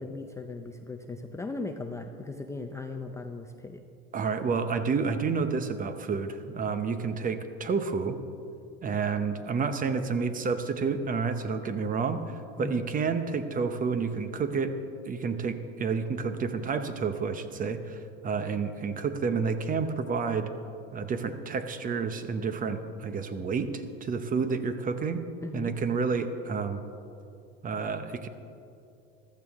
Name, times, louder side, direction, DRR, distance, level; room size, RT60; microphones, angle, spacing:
voice 1, 0.0-3.8 12.6-12.8 25.4-25.8, left 3 dB, 10° left, 5 dB, 0.5 m, -38 dB
voice 2, 4.1-8.2 8.8-12.2 12.6-14.7 15.1-20.5 20.9-25.2 25.5-26.8 27.6-28.3, right 5 dB, 25° right, 9 dB, 0.8 m, -30 dB
15.0 x 12.5 x 3.6 m, 2.6 s
supercardioid pair, 120°, 31 cm